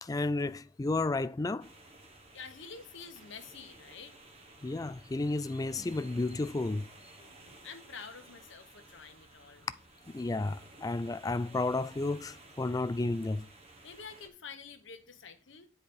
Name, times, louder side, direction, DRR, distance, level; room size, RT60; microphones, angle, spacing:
voice 1, 0.0-1.7 4.6-6.9 10.1-13.5, left 2 dB, 20° left, 0.3 m, -32 dB
sound 1, 1.6-14.3, right 2 dB, 30° right, 1.1 m, -55 dB
voice 2, 2.3-4.2 7.2-9.7 13.8-15.7, left 5 dB, 70° left, 1.2 m, -48 dB
9.5 x 4.9 x 4.4 m
head